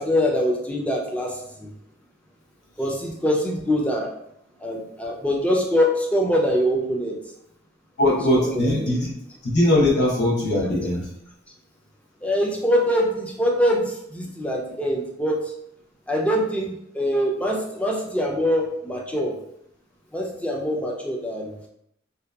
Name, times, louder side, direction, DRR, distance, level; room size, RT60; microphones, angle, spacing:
voice 1, 0.0-1.7 2.8-4.1 4.6-7.2 8.4-8.9 12.2-15.4 16.1-19.4 20.1-21.5, equal, 5° left, -1 dB, 0.3 m, -24 dB
voice 2, 8.0-9.1 9.4-11.0, left 1 dB, 60° left, -4 dB, 0.8 m, -20 dB
2.6 x 2.2 x 2.2 m, 0.77 s
head